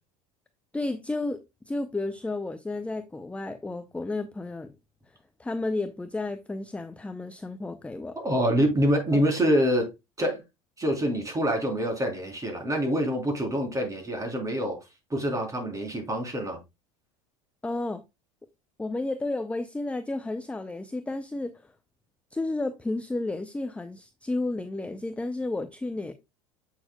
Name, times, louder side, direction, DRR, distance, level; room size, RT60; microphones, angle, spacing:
voice 1, 0.7-4.7 5.4-8.2 9.1-9.2 17.6-18.0 18.8-21.5 22.3-26.1, left 2 dB, 5° left, 0.6 m, -32 dB
voice 2, 8.2-9.9 10.2-10.4 10.8-14.8 15.1-16.6, equal, 20° right, 3.5 m, -26 dB
7.8 x 6.5 x 2.2 m
hypercardioid pair, 85°, 18 cm